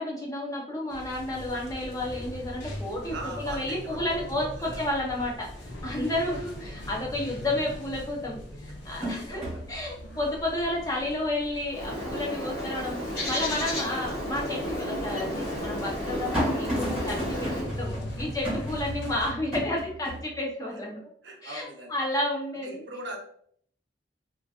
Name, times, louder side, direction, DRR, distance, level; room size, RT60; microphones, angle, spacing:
voice 1, 0.0-5.5 5.8-9.4 9.7-13.0 13.3-21.1 21.4-22.8, left 1 dB, 20° left, -2 dB, 0.7 m, -31 dB
sound 1, 0.9-19.3, left 1 dB, 75° left, 0.7 m, -41 dB
sound 2, 2.4-3.2 3.5-5.8 6.2-6.3 7.7-7.8 8.3-13.5 13.9-14.0 14.9-20.2, equal, 5° right, 1.5 m, -36 dB
voice 2, 3.1-4.8 5.8-6.4 9.0-9.6 12.5-13.1 13.6-14.0 20.7-20.8 21.2-21.9 22.6-23.2, right 2 dB, 85° right, 2 dB, 0.8 m, -42 dB
Bird, 11.7-17.7, equal, 50° left, 1.3 m, -32 dB
3.8 x 2.6 x 2.4 m, 0.64 s
head